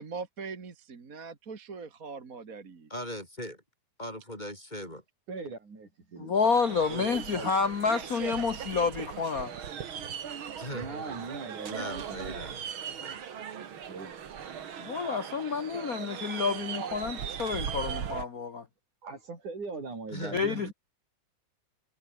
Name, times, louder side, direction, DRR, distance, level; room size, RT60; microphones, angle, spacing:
voice 1, 0.0-2.9 8.3-8.4, right 4 dB, 30° right, 2.0 m, -41 dB
voice 2, 2.9-3.6 4.0-5.0 10.6-11.2 11.7-13.2 20.1-20.7, left 1 dB, 15° left, 5.6 m, -40 dB
voice 3, 5.3-6.3 6.9-7.5 10.7-12.4 13.8-14.2 19.0-20.7, right 4 dB, 75° right, 8.2 m, -40 dB
voice 4, 6.2-9.5 14.8-18.6 20.3-20.7, left 5 dB, 75° left, 0.8 m, -29 dB
sound 1, 6.4-18.3, right 8 dB, 45° right, 2.1 m, -38 dB
omnidirectional pair, 3.5 m